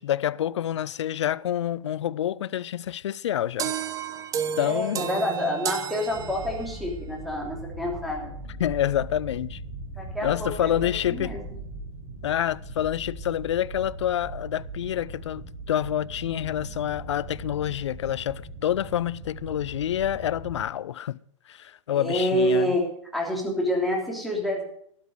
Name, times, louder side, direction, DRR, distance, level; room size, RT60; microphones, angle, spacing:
voice 1, 0.0-3.7 4.6-5.1 8.6-9.6 10.2-11.3 12.2-21.2 21.5-22.8, left 11 dB, 60° left, 0.5 m, -27 dB
sound 1, 3.6-6.9, right 8 dB, 20° right, 0.9 m, -32 dB
voice 2, 4.6-8.3 10.0-11.4 21.9-22.8 23.1-24.6, equal, ahead, 3.1 m, -27 dB
sound 2, 6.0-20.7, right 2 dB, 40° right, 4.5 m, -39 dB
12.5 x 11.5 x 4.8 m
figure-of-eight pair, 110°, 17 cm